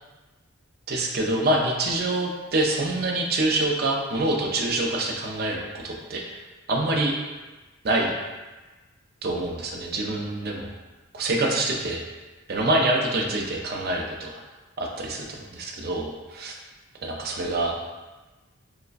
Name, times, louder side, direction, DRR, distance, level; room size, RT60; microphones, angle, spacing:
voice 1, 0.9-6.4 6.7-7.1 7.8-8.2 9.2-10.7 11.1-12.0 12.5-14.4 14.8-16.5 17.0-17.8, right 2 dB, 45° right, 0 dB, 0.4 m, -26 dB
4.5 x 2.1 x 2.4 m, 1.2 s
head